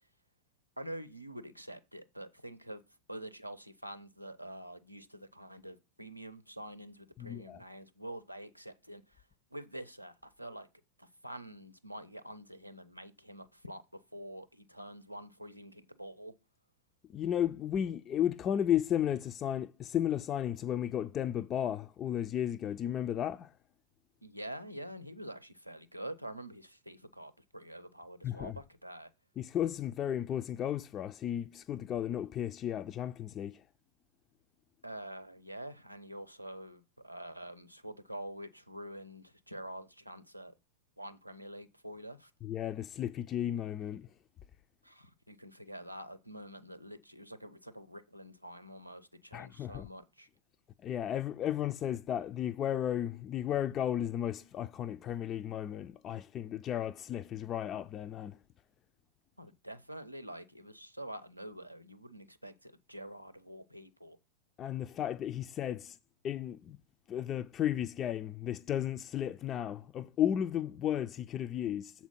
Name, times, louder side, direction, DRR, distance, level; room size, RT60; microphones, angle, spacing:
voice 1, 0.8-2.8 3.1-9.0 9.5-10.7 11.0-13.8 14.1-16.3 24.2-29.1 34.8-40.5 41.0-42.3 44.8-50.3 59.4-64.2, right 1 dB, 90° right, 0.6 m, -46 dB
voice 2, 7.2-7.6 17.1-23.5 28.2-28.6 29.4-33.6 42.4-44.1 49.3-49.9 50.8-58.4 64.6-66.0 66.2-66.8 67.1-71.9, left 10 dB, 30° left, 0.3 m, -34 dB
7.2 x 4.3 x 5.6 m
figure-of-eight pair, 90°, 0 cm